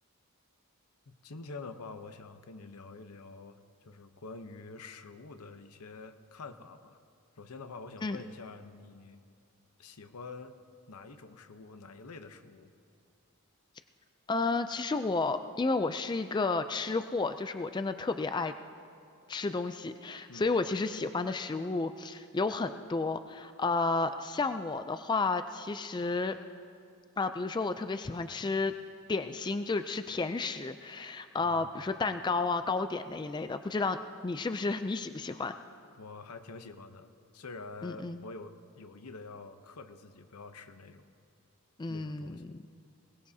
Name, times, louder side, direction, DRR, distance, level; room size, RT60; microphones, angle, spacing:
voice 1, 1.1-3.6 3.8-7.0 7.4-9.2 9.8-10.5 10.9-12.7 20.3-20.5 31.4-31.7 35.3-35.4 36.0-41.0 41.9-42.5, left 3 dB, 90° left, 9 dB, 0.8 m, -47 dB
voice 2, 14.3-18.5 19.3-26.4 27.2-28.7 29.1-35.5 37.8-38.2 41.8-42.6, left 3 dB, 20° left, 9 dB, 0.3 m, -32 dB
21.5 x 18.5 x 2.8 m, 2.5 s
head